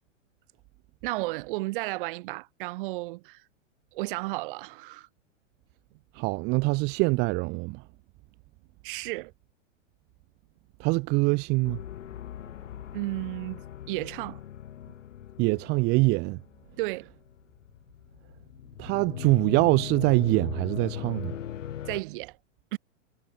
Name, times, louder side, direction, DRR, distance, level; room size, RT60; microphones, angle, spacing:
voice 1, 1.0-3.4 3.9-5.1 8.8-9.3 12.9-14.4 16.8-17.1 21.9-22.3 22.7-22.8, right 22 dB, 45° right, 2.9 m, -33 dB
voice 2, 6.1-7.8 10.8-11.8 15.4-16.4 18.8-21.3, right 26 dB, 25° right, 1.0 m, -24 dB
sound 1, 11.6-22.0, left 10 dB, 75° left, 3.3 m, -40 dB
hypercardioid pair, 155°, 38 cm